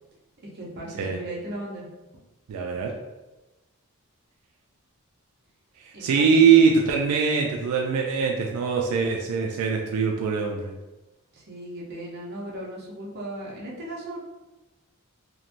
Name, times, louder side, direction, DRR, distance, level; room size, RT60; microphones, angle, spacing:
voice 1, 0.5-1.9 5.9-6.7 11.3-14.2, right 1 dB, 50° right, -4 dB, 0.7 m, -37 dB
voice 2, 2.5-2.9 6.0-10.7, right 6 dB, 85° right, 3 dB, 0.3 m, -22 dB
3.0 x 2.1 x 2.5 m, 1.1 s
head